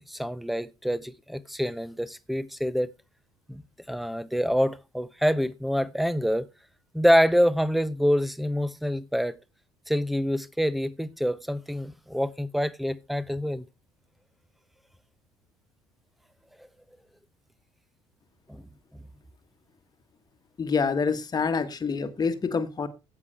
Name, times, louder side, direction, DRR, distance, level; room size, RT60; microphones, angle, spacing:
voice 1, 0.1-2.9 3.5-3.6 3.9-6.5 6.9-9.4 9.9-13.6 18.5-18.6, equal, ahead, 0.7 m, -26 dB
voice 2, 20.6-22.9, left 5 dB, 25° left, 1.4 m, -26 dB
16.0 x 6.1 x 3.3 m
figure-of-eight pair, 60°, 15 cm